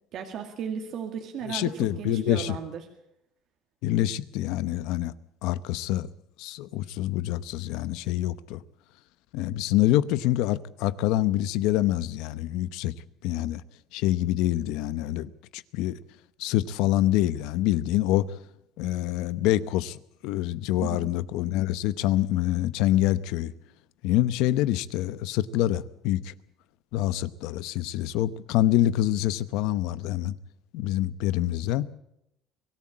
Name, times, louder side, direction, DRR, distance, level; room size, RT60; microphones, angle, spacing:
voice 1, 0.1-1.7 2.0-2.8 20.8-21.1, right 7 dB, 50° right, 2.0 m, -35 dB
voice 2, 1.4-2.6 3.8-5.1 5.4-6.1 6.4-8.6 9.3-12.9 13.2-13.6 13.9-16.0 16.4-18.4 18.8-23.5 24.0-26.3 26.9-30.3 30.7-31.9, left 14 dB, 75° left, 0.9 m, -26 dB
23.5 x 13.5 x 8.7 m
cardioid pair, 145°, 0 cm